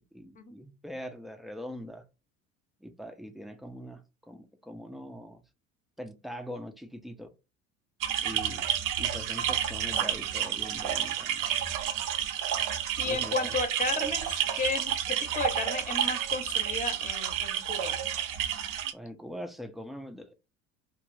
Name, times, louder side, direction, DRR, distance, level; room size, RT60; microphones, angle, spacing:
voice 1, 0.1-2.0 2.8-5.4 6.0-7.3 8.2-8.7 9.0-11.6 13.0-13.5 18.9-20.3, equal, ahead, 0.5 m, -42 dB
sound 1, 8.0-18.9, right 10 dB, 55° right, 0.7 m, -30 dB
voice 2, 13.0-18.0, left 4 dB, 20° left, 0.9 m, -34 dB
2.6 x 2.5 x 3.1 m
hypercardioid pair, 75°, 39 cm